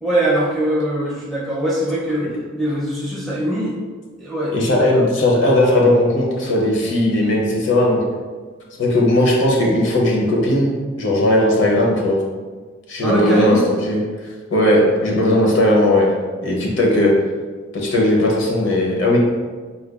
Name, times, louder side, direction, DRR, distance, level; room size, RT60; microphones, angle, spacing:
voice 1, 0.0-2.3 2.5-3.7 4.2-4.9 13.0-13.6, right 1 dB, ahead, -7 dB, 0.4 m, -21 dB
voice 2, 4.5-8.0 8.8-12.2 12.9-14.0 14.5-16.1 16.4-17.1 17.7-19.2, left 1 dB, 60° left, -2 dB, 0.6 m, -17 dB
3.8 x 2.2 x 2.3 m, 1.4 s
head